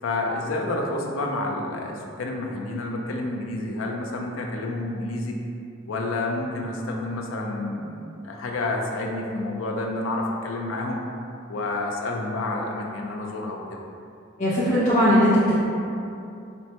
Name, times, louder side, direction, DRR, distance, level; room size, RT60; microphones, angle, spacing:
voice 1, 0.0-5.4 5.9-11.0 11.5-13.8, left 2 dB, 85° left, 1 dB, 0.4 m, -29 dB
voice 2, 14.4-15.6, equal, 40° left, -11 dB, 0.5 m, -19 dB
4.3 x 2.1 x 2.8 m, 2.6 s
head